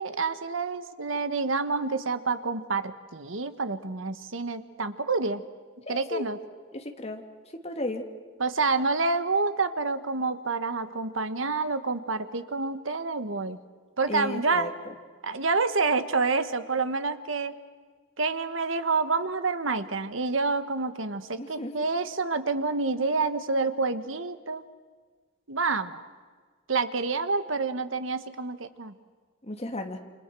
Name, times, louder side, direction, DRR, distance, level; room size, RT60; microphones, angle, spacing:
voice 1, 0.0-5.4 5.9-6.4 8.4-13.6 14.0-14.7 15.2-17.5 18.2-24.6 25.5-26.1 26.7-28.9, right 4 dB, 80° right, 11 dB, 1.4 m, -28 dB
voice 2, 5.9-6.3 6.7-7.2 7.6-8.1 14.1-14.9 21.4-21.7 29.4-30.0, left 2 dB, 30° left, 4 dB, 2.3 m, -34 dB
29.0 x 26.0 x 6.2 m, 1.6 s
head